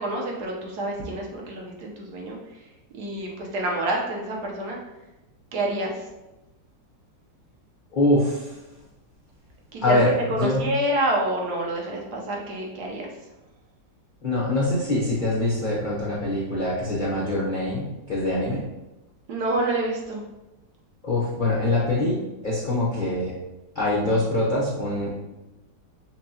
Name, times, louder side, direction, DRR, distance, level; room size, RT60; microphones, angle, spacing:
voice 1, 0.0-2.4 2.9-4.8 5.5-6.0 9.7-10.0 10.3-13.1 19.3-20.2, right 1 dB, 70° right, -1 dB, 1.2 m, -27 dB
voice 2, 7.9-8.6 9.8-10.7 14.2-18.6 21.0-23.3 23.7-25.1, left 1 dB, 80° left, -6 dB, 0.4 m, -24 dB
5.7 x 2.3 x 2.7 m, 0.99 s
omnidirectional pair, 2.0 m